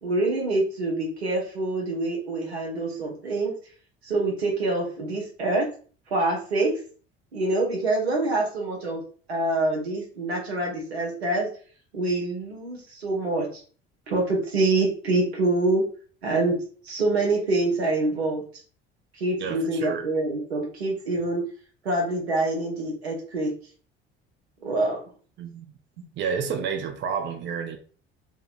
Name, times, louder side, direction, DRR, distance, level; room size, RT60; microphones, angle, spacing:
voice 1, 0.0-3.5 4.0-5.7 6.1-6.7 7.3-9.0 9.3-11.5 11.9-13.6 14.1-15.8 16.2-16.6 16.8-18.4 19.2-21.4 21.8-23.5 24.6-25.0, right 2 dB, 90° right, 0.7 m, -25 dB
voice 2, 19.4-20.0 25.4-25.7 26.2-27.8, right 6 dB, 40° right, 0.5 m, -30 dB
2.7 x 2.1 x 2.4 m
hypercardioid pair, 55°, 31 cm